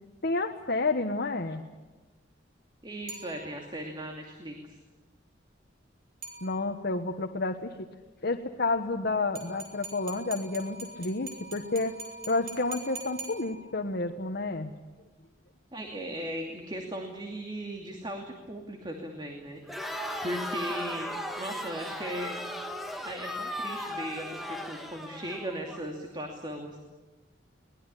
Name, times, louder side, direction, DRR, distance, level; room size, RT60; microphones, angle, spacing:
voice 1, 0.2-1.6 6.4-7.7 8.2-11.9 12.3-14.7, left 3 dB, 55° left, 4 dB, 1.3 m, -30 dB
voice 2, 2.8-4.8 15.7-22.4 23.0-26.8, right 1 dB, 25° right, 2 dB, 2.6 m, -38 dB
sound 1, 3.1-3.9 6.2-7.0 9.4-14.0, right 3 dB, 50° right, 6.1 m, -44 dB
Crowd, 19.6-25.8, equal, ahead, 2.1 m, -37 dB
23.0 x 20.0 x 10.0 m, 1.2 s
head